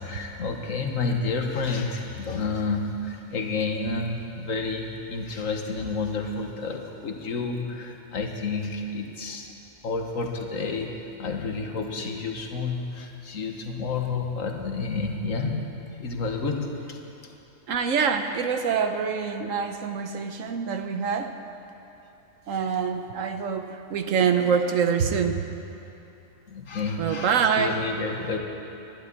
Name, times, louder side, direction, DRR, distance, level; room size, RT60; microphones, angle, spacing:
voice 1, 0.0-9.5 9.8-15.6 15.9-17.3 26.5-28.4, left 4 dB, 70° left, 3 dB, 1.6 m, -30 dB
voice 2, 17.7-21.4 22.5-25.4 27.0-27.7, right 6 dB, 70° right, 7 dB, 1.2 m, -25 dB
11.5 x 11.5 x 8.3 m, 2.8 s
omnidirectional pair, 1.4 m